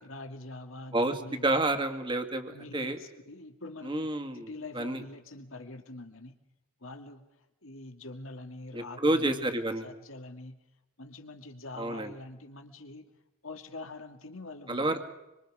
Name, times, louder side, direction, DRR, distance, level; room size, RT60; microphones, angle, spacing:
voice 1, 0.0-1.6 2.4-6.4 6.8-7.2 7.6-9.5 9.8-10.6 11.0-13.1 13.4-14.9, left 2 dB, 70° left, 6 dB, 2.3 m, -45 dB
voice 2, 0.9-3.0 3.8-4.5 4.7-5.0 8.7-9.9 11.8-12.1 14.7-15.0, right 2 dB, 25° right, 6 dB, 2.3 m, -29 dB
26.0 x 25.0 x 5.0 m, 0.98 s
head